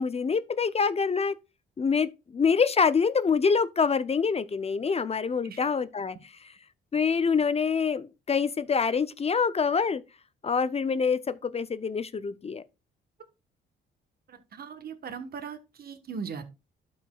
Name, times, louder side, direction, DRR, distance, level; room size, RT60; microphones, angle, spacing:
voice 1, 0.0-1.3 1.8-6.2 6.9-10.0 10.4-12.6, left 5 dB, 30° left, 0.6 m, -26 dB
voice 2, 14.3-16.4, right 6 dB, 50° right, 1.3 m, -39 dB
12.0 x 5.4 x 2.3 m
cardioid pair, 90°, 20 cm